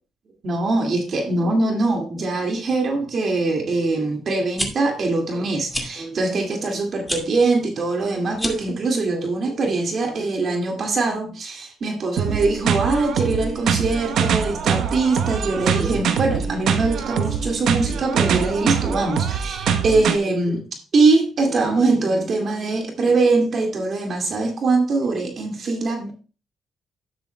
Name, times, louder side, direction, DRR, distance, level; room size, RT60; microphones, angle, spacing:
voice 1, 0.4-20.6 20.9-26.1, right 3 dB, 50° right, 3 dB, 2.2 m, -22 dB
sound 1, 4.6-4.7 5.7-5.9 7.0-7.2 8.3-8.7, left 1 dB, ahead, 2.3 m, -27 dB
sound 2, 12.2-20.2, right 7 dB, 75° right, 1.0 m, -23 dB
12.5 x 9.8 x 2.2 m, 0.34 s
cardioid pair, 90°, 0 cm